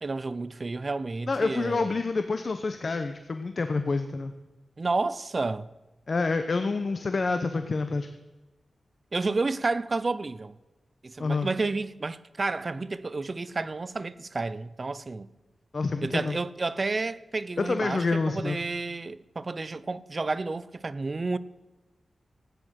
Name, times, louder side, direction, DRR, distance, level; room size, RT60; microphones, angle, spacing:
voice 1, 0.0-2.0 4.8-5.7 9.1-10.6 11.0-15.3 16.0-21.4, right 3 dB, 40° right, 0.6 m, -31 dB
voice 2, 1.3-4.3 6.1-8.1 11.2-11.5 15.7-16.4 17.6-18.6, left 3 dB, 50° left, 0.9 m, -28 dB
16.0 x 9.7 x 6.4 m
wide cardioid pair, 90°, 0 cm